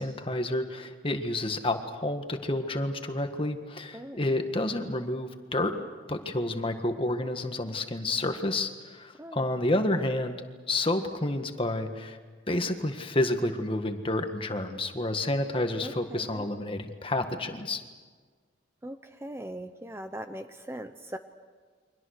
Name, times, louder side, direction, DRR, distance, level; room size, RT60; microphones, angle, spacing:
voice 1, 0.0-5.7 6.1-10.3 10.7-12.2 12.5-17.8, left 1 dB, 30° left, 6 dB, 1.7 m, -29 dB
voice 2, 3.9-4.3 9.2-9.4 15.8-16.4 18.8-21.2, right 1 dB, 15° right, 8 dB, 0.8 m, -40 dB
29.5 x 24.5 x 6.6 m, 1.5 s
head